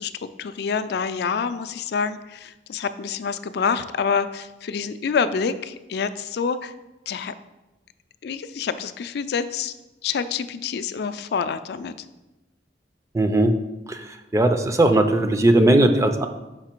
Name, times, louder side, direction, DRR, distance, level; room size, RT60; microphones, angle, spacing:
voice 1, 0.0-6.7 7.1-7.3 8.2-9.7 10.0-11.9, left 6 dB, 60° left, 12 dB, 0.4 m, -27 dB
voice 2, 13.1-13.5 13.9-14.0 14.3-16.3, right 1 dB, 15° right, 7 dB, 0.4 m, -18 dB
5.8 x 4.8 x 4.5 m, 1.0 s
head